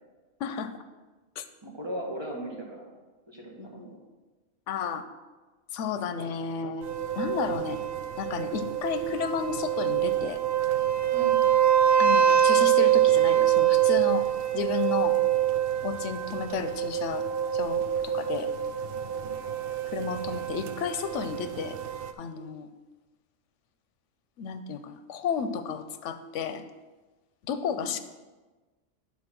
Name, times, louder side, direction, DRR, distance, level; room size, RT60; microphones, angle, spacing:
voice 1, 0.4-0.7 1.4-1.5 3.6-4.0 4.7-5.1 5.7-6.9 7.2-7.8 8.2-10.4 12.0-14.3 14.5-15.2 15.8-17.3 17.5-18.5 19.9-21.8 22.2-22.7 24.4-26.6 27.4-28.0, left 6 dB, 85° left, 10 dB, 0.9 m, -32 dB
voice 2, 1.6-2.9 3.3-4.0 11.1-11.4 19.2-19.3 27.7-27.9, right 1 dB, 25° right, -2 dB, 1.5 m, -38 dB
sound 1, 6.8-22.1, right 10 dB, 60° right, 0.7 m, -25 dB
9.7 x 4.1 x 6.0 m, 1.2 s
omnidirectional pair, 1.2 m